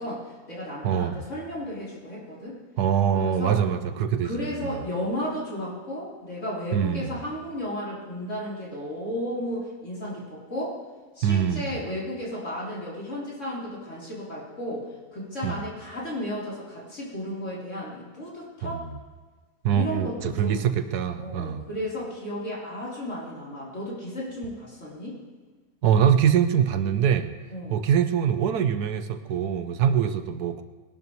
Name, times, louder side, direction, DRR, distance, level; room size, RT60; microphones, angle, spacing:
voice 1, 0.0-2.6 3.1-3.6 4.2-10.8 11.2-18.8 19.7-20.7 21.2-25.2 27.5-27.8 29.8-30.0, equal, 50° left, -6 dB, 3.9 m, -34 dB
voice 2, 0.8-1.2 2.8-4.8 6.7-7.2 11.2-11.8 15.4-15.6 18.6-19.0 19.6-21.6 25.8-27.3 27.7-30.6, right 8 dB, 85° right, 10 dB, 1.3 m, -24 dB
21.0 x 12.0 x 3.1 m, 1.3 s
omnidirectional pair, 1.6 m